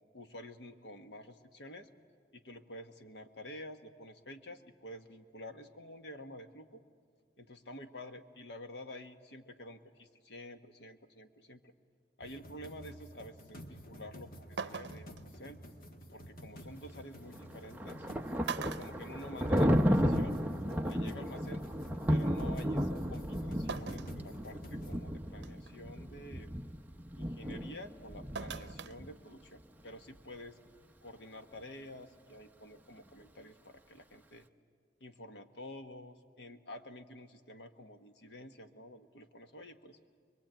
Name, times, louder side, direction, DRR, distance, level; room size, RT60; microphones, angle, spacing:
voice 1, 0.1-1.9 2.3-6.8 7.4-11.7 12.2-15.6 16.1-18.1 18.5-20.4 20.8-21.6 22.1-26.5 27.2-30.6 31.0-34.4 35.0-40.0, left 1 dB, 80° left, 7 dB, 1.4 m, -49 dB
sound 1, 12.2-25.0, equal, 55° left, 1.8 m, -50 dB
sound 2, 14.0-14.1 14.6-15.2 16.8-16.9 17.9-18.1 18.4-19.8 20.2-20.3 21.5-21.6 23.7-24.2 24.7-24.8 25.4-25.7 28.3-29.0 29.3-29.4, right 5 dB, 80° right, 0.7 m, -41 dB
Thunder, 17.3-29.1, equal, 10° right, 0.7 m, -33 dB
23.5 x 23.0 x 9.0 m, 2.1 s
head